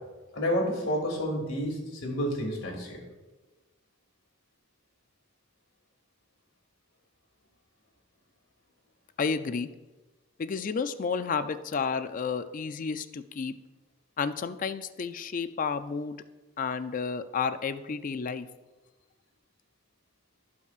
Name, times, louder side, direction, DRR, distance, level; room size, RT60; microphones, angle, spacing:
voice 1, 0.3-3.0, equal, 80° left, -1 dB, 2.7 m, -30 dB
voice 2, 9.2-9.7 10.4-13.5 14.2-16.2 16.6-18.5, left 5 dB, 40° left, 11 dB, 0.4 m, -31 dB
16.0 x 5.6 x 2.4 m, 1.2 s
head